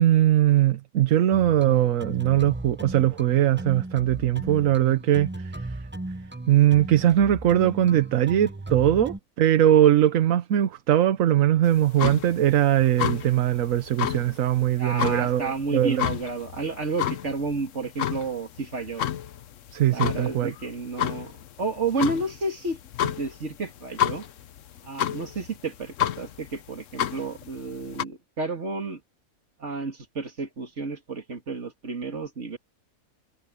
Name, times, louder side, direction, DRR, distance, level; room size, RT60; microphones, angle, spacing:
voice 1, 0.0-5.7 6.5-16.0 19.7-20.5, right 12 dB, 70° right, 1.1 m, -21 dB
sound 1, 1.3-9.2, right 2 dB, 15° right, 0.4 m, -36 dB
sound 2, 11.7-28.0, left 11 dB, 65° left, 1.1 m, -31 dB
voice 2, 14.8-19.0 19.9-24.2 24.8-29.0 29.6-32.6, right 3 dB, 50° right, 2.8 m, -31 dB
omnidirectional pair, 1.5 m